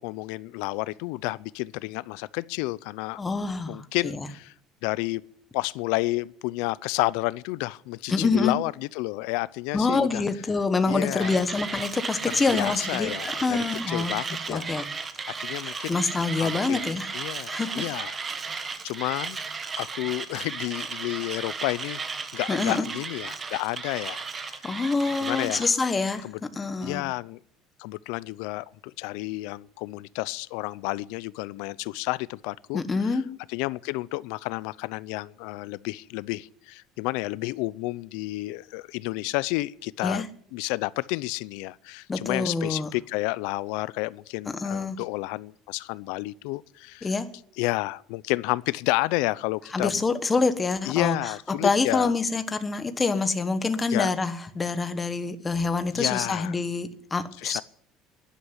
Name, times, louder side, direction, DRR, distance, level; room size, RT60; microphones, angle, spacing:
voice 1, 0.0-3.2 3.7-4.5 4.8-5.2 5.5-10.2 10.9-11.4 12.5-14.7 15.4-16.0 16.3-16.8 17.1-18.2 18.6-19.4 19.7-22.0 22.3-24.6 25.2-25.7 26.2-26.4 26.8-27.4 27.8-33.1 33.5-40.3 40.5-47.1 47.6-50.0 50.9-52.1 53.9-54.1 55.9-56.5 57.4-57.6, left 21 dB, 80° left, 0.5 m, -31 dB
voice 2, 3.2-4.3 8.1-8.5 9.7-14.1 14.5-14.9 15.2-17.1 17.5-17.8 22.5-22.9 24.6-27.0 32.7-33.3 40.0-40.3 42.1-42.9 44.5-45.0 47.0-47.3 49.7-51.3 51.6-57.6, left 4 dB, 15° left, 1.2 m, -26 dB
Mechanisms, 11.2-25.7, right 5 dB, 20° right, 1.1 m, -35 dB
12.0 x 11.0 x 9.8 m
cardioid pair, 160°, 0 cm